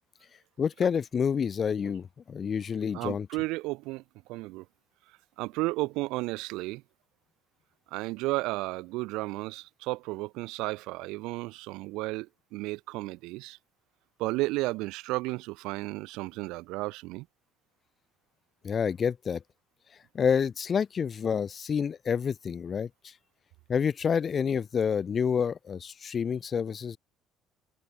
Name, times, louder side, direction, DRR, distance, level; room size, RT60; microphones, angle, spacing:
voice 1, 0.6-3.3 18.6-19.4 20.1-22.9 23.7-27.0, left 7 dB, 40° left, 1.2 m, -28 dB
voice 2, 2.9-4.0 4.3-4.6 5.4-6.8 7.9-13.6 14.2-17.3, right 21 dB, 80° right, 2.7 m, -33 dB
supercardioid pair, 85°, 0 cm